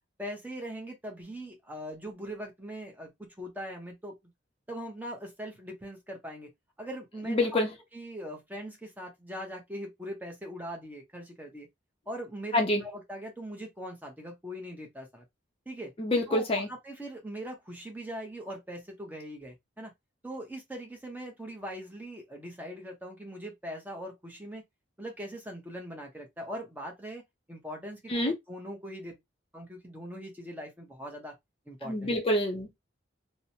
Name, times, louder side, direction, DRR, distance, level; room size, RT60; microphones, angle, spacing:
voice 1, 0.2-4.1 4.7-6.5 6.8-7.7 7.9-11.7 12.1-15.2 15.7-15.9 16.3-19.9 20.2-24.6 25.0-27.2 27.5-29.2 29.5-31.3 31.7-32.1, equal, 10° right, 0.7 m, -41 dB
voice 2, 7.3-7.7 12.5-12.8 16.0-16.7 28.1-28.3 31.9-32.8, left 1 dB, 30° left, 0.5 m, -27 dB
2.9 x 2.0 x 2.7 m
head